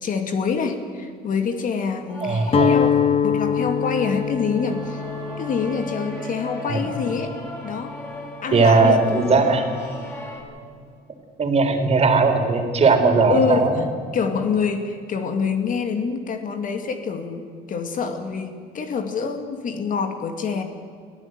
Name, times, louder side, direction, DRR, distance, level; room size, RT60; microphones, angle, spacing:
voice 1, 0.0-2.9 3.2-5.0 5.4-7.3 7.6-7.9 8.4-9.2 13.3-13.8 14.1-20.6, left 5 dB, 55° left, 6 dB, 2.3 m, -26 dB
sound 1, 2.1-10.4, left 1 dB, 10° left, 7.8 m, -37 dB
voice 2, 2.2-2.8 6.7-6.8 8.5-9.7 11.4-13.8, right 4 dB, 40° right, 5 dB, 3.7 m, -18 dB
Guitar, 2.5-8.5, left 7 dB, 35° left, 1.1 m, -25 dB
24.0 x 15.5 x 9.4 m, 2.1 s
cardioid pair, 110°, 17 cm